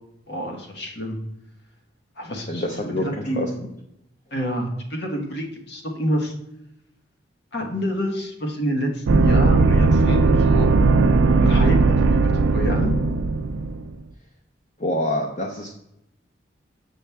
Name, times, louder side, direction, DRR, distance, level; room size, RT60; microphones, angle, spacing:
voice 1, 0.3-1.2 2.2-2.6 2.9-3.4 4.3-6.3 7.5-10.7 11.4-11.8 12.2-12.9, equal, 60° left, 3 dB, 1.3 m, -27 dB
voice 2, 2.5-3.5 14.8-15.7, left 1 dB, 40° left, 2 dB, 0.8 m, -26 dB
sound 1, 9.1-13.9, right 3 dB, 90° right, 0.4 m, -17 dB
7.2 x 6.1 x 3.4 m, 0.81 s
head